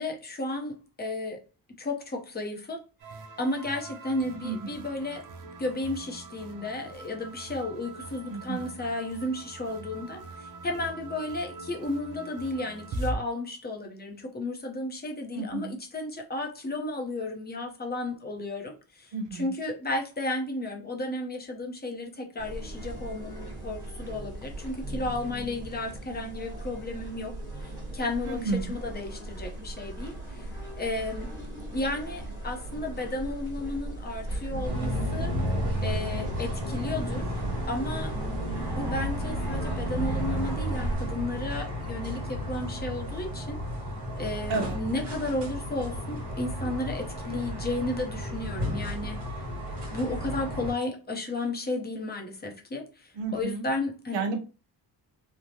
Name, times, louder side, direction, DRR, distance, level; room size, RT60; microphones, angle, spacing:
voice 1, 0.0-1.4 1.8-2.8 3.4-27.4 27.6-28.4 28.7-30.5 30.8-31.3 31.7-35.3 35.8-37.3 37.7-43.6 44.1-49.4 49.9-54.2, left 2 dB, 20° left, 0.6 m, -33 dB
sound 1, 3.0-13.2, right 2 dB, 45° right, 0.5 m, -41 dB
voice 2, 4.4-4.7 8.3-8.7 15.3-15.8 19.1-19.5 28.2-28.8 44.5-44.8 53.1-53.7 54.1-54.4, right 4 dB, 85° right, 0.8 m, -32 dB
sound 2, 22.4-41.0, right 1 dB, 10° right, 1.2 m, -38 dB
sound 3, 34.6-50.7, equal, 65° right, 1.2 m, -33 dB
3.2 x 2.1 x 2.7 m
cardioid pair, 135°, 43 cm